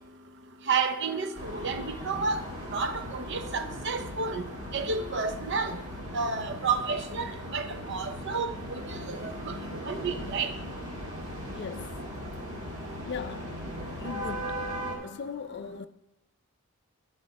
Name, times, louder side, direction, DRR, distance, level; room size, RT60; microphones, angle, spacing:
voice 1, 0.7-2.4 2.7-4.4 4.7-5.8 6.1-9.5 9.9-10.5, right 4 dB, 50° right, 0.6 m, -31 dB
sound 1, 1.3-15.0, equal, 35° right, 2.2 m, -38 dB
voice 2, 11.5-11.9 13.0-13.6 14.0-14.7 15.0-15.9, left 5 dB, 50° left, 0.4 m, -38 dB
11.0 x 4.3 x 5.2 m
head